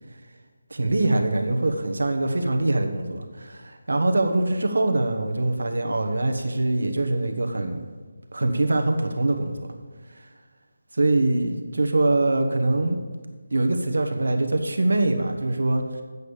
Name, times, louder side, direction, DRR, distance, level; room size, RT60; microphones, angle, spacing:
voice 1, 0.7-7.8 8.3-9.7 10.1-10.3 10.9-13.0 13.5-16.0, right 2 dB, 80° right, 5 dB, 1.2 m, -23 dB
8.3 x 6.5 x 7.1 m, 1.4 s
figure-of-eight pair, 175°, 0 cm